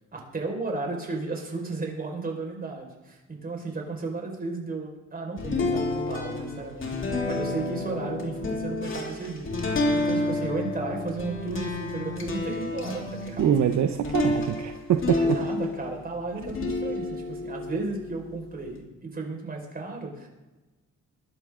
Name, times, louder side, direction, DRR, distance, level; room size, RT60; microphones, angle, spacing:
voice 1, 0.1-13.4 15.1-20.3, right 3 dB, 30° right, 1 dB, 5.0 m, -34 dB
sound 1, 5.4-16.0 16.4-18.7, left 2 dB, 40° left, 3.5 m, -30 dB
voice 2, 13.4-15.4, right 10 dB, 65° right, 7 dB, 0.9 m, -24 dB
22.5 x 11.5 x 3.8 m, 1.1 s
cardioid pair, 90°, 30 cm